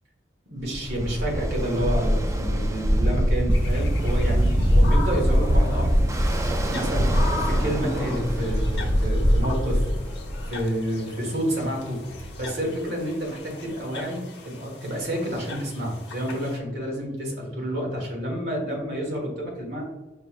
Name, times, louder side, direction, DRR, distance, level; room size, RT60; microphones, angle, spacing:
voice 1, 0.5-5.9 6.7-9.9 10.5-12.0 12.4-19.8, equal, 55° right, -2 dB, 1.4 m, -29 dB
Ocean, 0.7-10.6, equal, 15° right, 0.3 m, -22 dB
sound 1, 3.5-16.6, left 3 dB, 55° left, 0.8 m, -40 dB
sound 2, 7.4-13.3, equal, 5° left, 0.8 m, -40 dB
5.2 x 3.1 x 2.4 m, 1.1 s
head